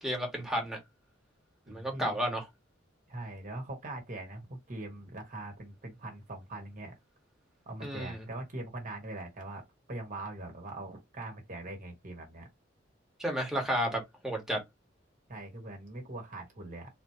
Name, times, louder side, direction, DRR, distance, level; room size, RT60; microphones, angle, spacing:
voice 1, 0.0-0.8 1.7-2.4 7.8-8.2 13.2-14.6, equal, 5° right, 1.4 m, -32 dB
voice 2, 1.7-2.2 3.1-7.0 7.6-9.6 9.9-12.5 15.3-16.9, right 2 dB, 45° right, 1.4 m, -42 dB
3.9 x 3.1 x 2.8 m
head